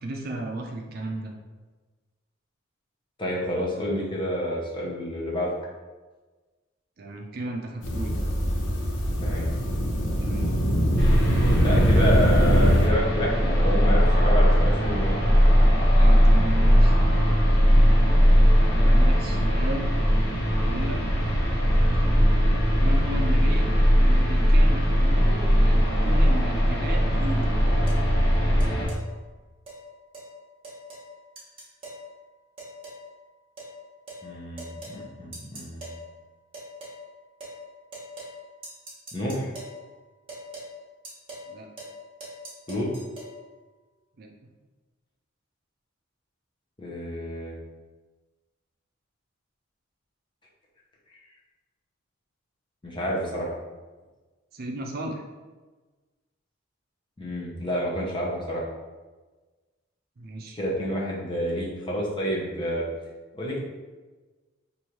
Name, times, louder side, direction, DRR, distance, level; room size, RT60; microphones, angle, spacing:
voice 1, 0.0-1.3 3.7-3.9 7.0-8.2 10.2-10.5 11.8-12.3 15.9-17.0 18.8-19.9 20.6-21.0 22.8-23.7 24.0-27.5 41.5-41.7 44.2-44.3 54.5-55.2 60.2-60.6, right 1 dB, 50° right, 2 dB, 0.5 m, -34 dB
voice 2, 3.2-5.5 9.2-9.5 11.6-15.2 34.2-35.9 39.1-39.5 42.7-42.9 46.8-47.6 52.8-53.5 57.2-58.6 60.6-62.9 63.3-63.6, equal, 25° left, -4 dB, 0.8 m, -29 dB
sound 1, 7.8-12.9, equal, 70° left, 0.7 m, -23 dB
sound 2, 11.0-28.9, equal, 55° left, 1.0 m, -19 dB
sound 3, 27.9-28.0 28.6-29.0 29.7-29.8 30.1-30.3 30.6-31.1 31.4-32.0 32.6-33.0 33.6-33.7 34.1-34.2 34.6-35.0 35.3-36.0 36.5-37.0 37.4-37.6 37.9-38.4 38.6-39.8 40.3-40.7 41.0-41.5 41.8-42.0 42.2-43.3, right 1 dB, 30° right, 1.1 m, -41 dB
3.1 x 2.6 x 4.4 m, 1.3 s
head